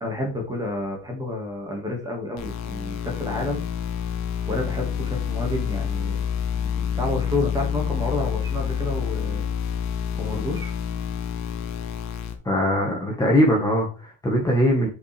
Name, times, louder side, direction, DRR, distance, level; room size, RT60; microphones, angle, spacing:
voice 1, 0.0-3.7 4.5-6.2 6.6-9.5 10.2-10.7, left 2 dB, 10° right, 2 dB, 1.8 m, -30 dB
sound 1, 2.4-12.3, left 8 dB, 45° left, 1.2 m, -28 dB
voice 2, 12.4-14.9, equal, 10° left, -2 dB, 1.4 m, -21 dB
8.1 x 5.5 x 3.4 m, 0.35 s
cardioid pair, 170°, 36 cm